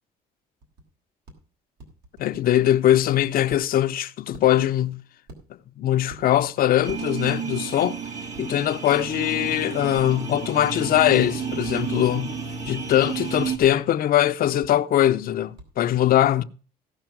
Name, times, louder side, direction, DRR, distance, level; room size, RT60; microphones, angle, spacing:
sound 1, 0.6-0.8 1.3-1.4 1.8-3.6 4.3-4.5 5.3-5.7 6.1-6.2 6.9-7.0 8.3-8.4 9.0-9.1 9.9-10.1 10.6-10.7 11.6-11.8 12.6-12.7 13.6-13.7 14.6-14.7 15.6-15.7, right 2 dB, 80° right, 3.4 m, -44 dB
voice 1, 2.2-5.0 5.8-8.0 8.4-12.4 12.7-16.4, left 12 dB, 60° left, 0.7 m, -21 dB
sound 2, 6.8-13.6, right 6 dB, 45° right, 1.8 m, -31 dB
16.0 x 5.7 x 5.9 m
cardioid pair, 110°, 17 cm